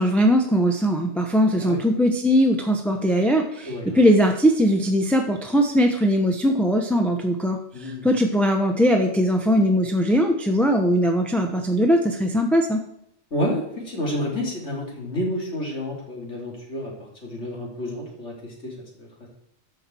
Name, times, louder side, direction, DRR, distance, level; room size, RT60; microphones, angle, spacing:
voice 1, 0.0-12.8, equal, ahead, 2 dB, 0.8 m, -20 dB
voice 2, 3.6-4.0 7.7-8.1 13.3-16.9 17.2-19.3, left 1 dB, 75° left, -2 dB, 3.2 m, -30 dB
13.5 x 5.9 x 4.5 m, 0.75 s
omnidirectional pair, 1.2 m